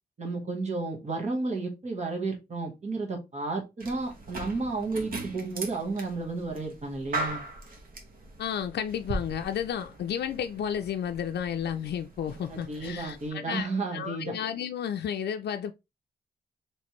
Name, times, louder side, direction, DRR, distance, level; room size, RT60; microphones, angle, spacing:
voice 1, 0.2-7.4 12.5-14.3, right 3 dB, 45° right, 1.3 m, -32 dB
sound 1, 3.8-13.3, right 2 dB, 60° right, 1.0 m, -40 dB
voice 2, 8.4-15.7, left 9 dB, 85° left, 0.4 m, -32 dB
4.2 x 3.1 x 3.1 m
wide cardioid pair, 180°, 17 cm